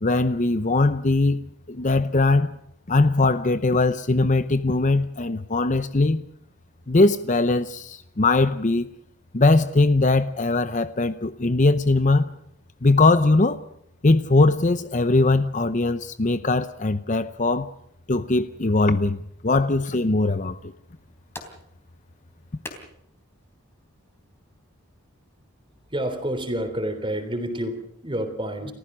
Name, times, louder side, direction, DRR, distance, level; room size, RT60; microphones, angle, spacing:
voice 1, 0.0-2.5 2.9-6.2 6.9-8.9 9.3-12.3 12.8-13.6 14.0-17.7 18.1-20.7, left 2 dB, 35° left, 0.7 m, -20 dB
sound 1, 20.8-25.9, left 2 dB, 10° left, 3.4 m, -47 dB
voice 2, 25.9-28.7, right 1 dB, 25° right, 3.4 m, -29 dB
30.0 x 15.0 x 6.2 m
head